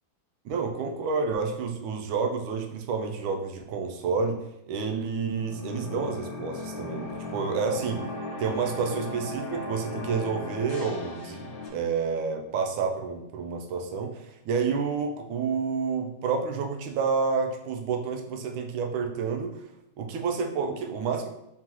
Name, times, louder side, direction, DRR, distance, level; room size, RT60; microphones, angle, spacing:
voice 1, 0.4-4.4 4.7-8.0 8.4-19.7 20.0-21.3, right 5 dB, 80° right, 3 dB, 1.4 m, -29 dB
sound 1, 5.3-11.7, left 2 dB, 65° left, 0.9 m, -37 dB
4.3 x 3.6 x 3.0 m, 0.84 s
omnidirectional pair, 2.2 m